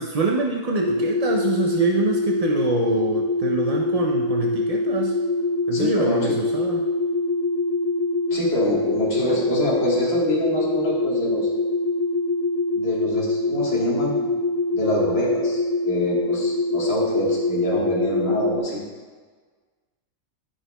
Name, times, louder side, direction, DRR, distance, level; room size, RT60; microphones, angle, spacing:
voice 1, 0.0-5.2 5.7-6.8, right 4 dB, 60° right, 0 dB, 0.3 m, -25 dB
sound 1, 0.8-18.6, left 2 dB, 75° left, 1.4 m, -24 dB
voice 2, 5.7-6.2 8.3-11.5 12.7-14.3 14.7-18.8, equal, 50° left, -5 dB, 1.7 m, -26 dB
11.0 x 6.2 x 2.2 m, 1.5 s
omnidirectional pair, 1.4 m